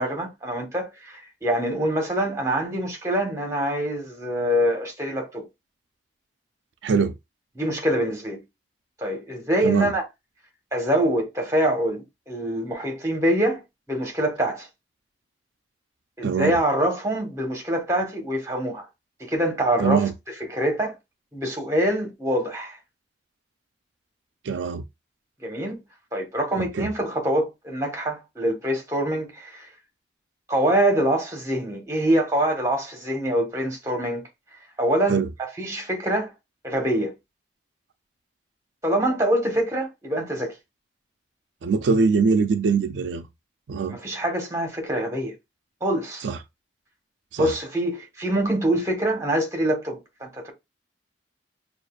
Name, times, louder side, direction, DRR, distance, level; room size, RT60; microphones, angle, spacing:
voice 1, 0.0-5.5 7.5-8.4 9.0-10.0 10.7-13.6 13.9-14.7 16.2-18.9 19.2-20.1 20.5-20.9 21.3-22.8 25.4-25.8 26.1-29.7 30.5-34.2 34.8-36.3 36.6-37.1 38.8-40.5 43.9-45.3 45.8-46.3 47.4-50.5, right 1 dB, 15° right, 1.2 m, -25 dB
voice 2, 6.8-7.1 9.6-9.9 16.2-16.6 19.8-20.1 24.5-24.8 26.6-26.9 35.1-35.3 41.6-43.3 43.7-44.0 46.2-46.4 47.3-47.5, right 5 dB, 85° right, 0.4 m, -22 dB
6.3 x 2.5 x 2.4 m
head